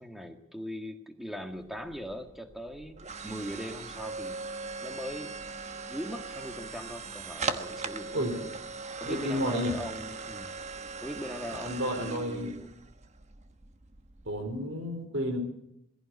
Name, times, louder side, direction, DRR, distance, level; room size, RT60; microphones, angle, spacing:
voice 1, 0.0-3.0 3.2-5.3 5.9-8.5 9.0-10.5 11.0-12.7, equal, ahead, 6 dB, 1.7 m, -40 dB
sound 1, 1.5-14.6, right 4 dB, 35° right, 1.2 m, -40 dB
voice 2, 9.0-9.7 11.6-12.5 14.2-15.4, equal, 60° right, 6 dB, 4.6 m, -31 dB
18.5 x 16.0 x 9.6 m, 0.77 s
head